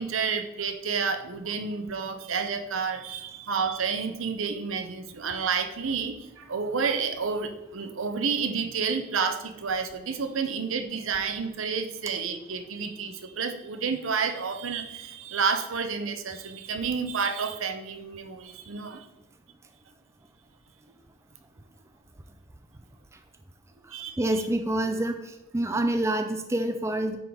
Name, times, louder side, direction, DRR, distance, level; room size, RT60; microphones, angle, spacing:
voice 1, 0.0-19.1 23.9-24.2, right 5 dB, 80° right, 7 dB, 0.8 m, -30 dB
voice 2, 23.8-27.2, right 1 dB, 15° right, 6 dB, 0.4 m, -27 dB
9.5 x 4.0 x 4.8 m, 0.96 s
head